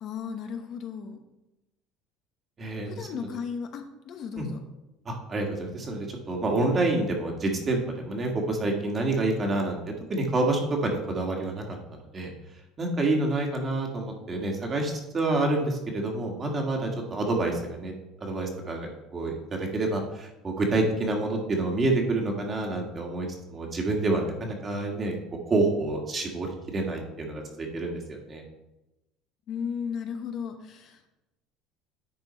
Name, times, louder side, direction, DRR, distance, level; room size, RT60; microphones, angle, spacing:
voice 1, 0.0-1.2 2.9-4.6 29.5-31.0, left 6 dB, 50° left, 6 dB, 1.0 m, -35 dB
voice 2, 2.6-3.3 4.4-4.5 5.1-9.8 10.1-11.8 12.1-12.3 12.8-17.9 18.2-25.1 25.5-28.4, right 2 dB, 30° right, 1 dB, 1.8 m, -28 dB
10.0 x 4.4 x 4.4 m, 0.97 s
supercardioid pair, 120°, 0 cm